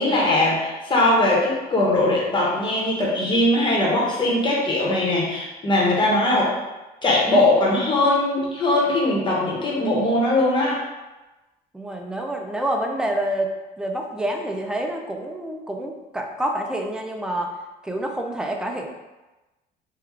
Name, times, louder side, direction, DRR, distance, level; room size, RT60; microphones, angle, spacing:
voice 1, 0.0-6.5 7.0-10.8, left 1 dB, 30° left, -4 dB, 1.1 m, -20 dB
voice 2, 11.7-13.5 13.8-17.5 17.8-18.9, right 1 dB, 5° right, 2 dB, 0.4 m, -27 dB
3.6 x 2.3 x 3.2 m, 1.1 s
cardioid pair, 110°, 17 cm